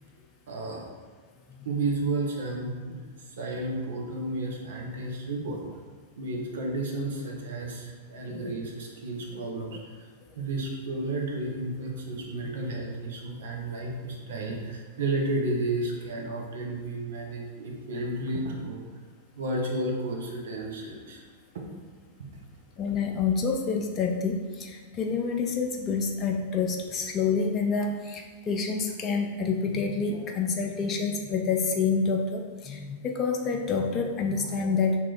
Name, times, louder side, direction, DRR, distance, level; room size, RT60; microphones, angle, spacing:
voice 1, 0.5-0.9 1.6-3.0 3.3-5.6 6.2-10.1 10.4-18.8 19.4-21.2 21.5-21.6 22.2-22.3, right 2 dB, 65° right, 0 dB, 0.7 m, -32 dB
voice 2, 22.8-35.0, left 5 dB, 30° left, 2 dB, 0.4 m, -28 dB
2.9 x 2.8 x 3.8 m, 1.5 s
figure-of-eight pair, 95°, 0 cm